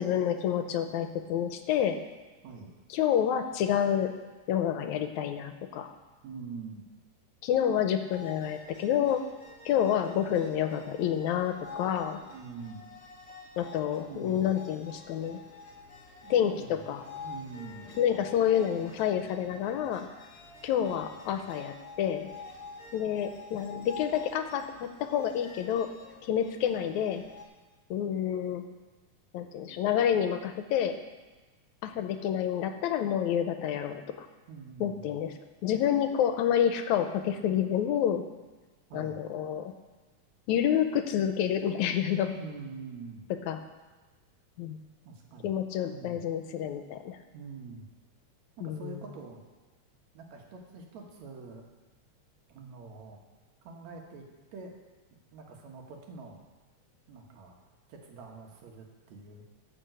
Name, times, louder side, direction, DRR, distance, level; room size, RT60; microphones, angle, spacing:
voice 1, 0.0-2.0 2.9-4.1 4.5-5.9 7.4-9.2 9.7-12.2 13.6-15.4 16.3-17.0 18.0-20.1 20.6-22.3 22.9-25.9 26.2-27.2 27.9-28.6 29.3-30.9 31.8-34.3 34.8-35.3 35.6-38.2 38.9-39.7 40.5-42.4 43.5-43.6 44.6-44.8 45.4-47.2 48.6-49.0, left 9 dB, 80° left, 8 dB, 2.1 m, -28 dB
voice 2, 6.2-6.8 12.3-12.9 14.1-14.5 16.2-17.9 34.5-35.1 38.9-39.2 42.4-43.3 45.0-45.5 45.8-46.2 47.3-47.9 48.6-49.4 50.1-51.6 52.5-53.2 53.6-54.3 54.5-54.7 55.3-56.4 57.1-57.6 57.9-59.6, right 4 dB, 70° right, 1 dB, 2.6 m, -45 dB
sound 1, 8.1-27.4, left 4 dB, 30° left, 1.2 m, -48 dB
13.0 x 5.3 x 7.8 m, 1.3 s
omnidirectional pair, 3.3 m